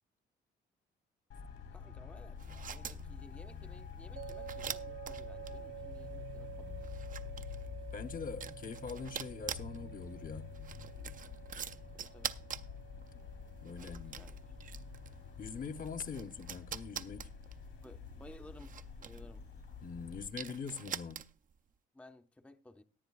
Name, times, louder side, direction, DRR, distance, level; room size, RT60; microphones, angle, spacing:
Traffic noise roadway noise, 1.3-20.3, left 6 dB, 80° left, 3.0 m, -48 dB
voice 1, 1.7-6.9 7.4-7.7 11.9-12.4 13.8-14.4 14.6-14.7 17.8-19.4 21.9-22.8, left 1 dB, 5° left, 0.6 m, -57 dB
sound 1, 2.4-21.6, right 8 dB, 40° right, 0.5 m, -47 dB
sound 2, 4.2-17.3, right 13 dB, 80° right, 2.0 m, -52 dB
voice 2, 7.9-10.5 13.6-14.2 15.4-17.3 19.8-21.2, left 5 dB, 45° left, 0.9 m, -43 dB
17.5 x 10.5 x 2.3 m
cardioid pair, 90°, 20 cm